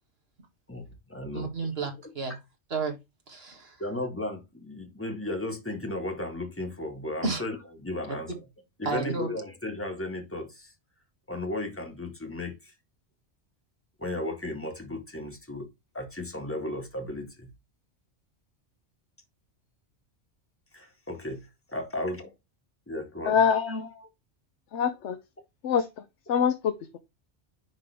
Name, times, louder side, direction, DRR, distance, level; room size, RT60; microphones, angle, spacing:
voice 1, 0.7-1.5 3.8-8.3 8.8-10.7 11.3-12.6 14.0-15.7 15.9-17.5 20.7-22.3 22.9-23.4 23.7-24.1, left 1 dB, 10° left, 1.8 m, -35 dB
voice 2, 1.3-2.4 2.7-3.0 3.3-3.8 7.2-7.4 8.3-8.4 8.8-9.3, right 4 dB, 60° right, 2.2 m, -31 dB
voice 3, 23.2-23.9 24.7-25.2 25.6-25.9 26.3-27.0, left 7 dB, 85° left, 1.1 m, -24 dB
10.5 x 3.7 x 3.4 m
omnidirectional pair, 1.2 m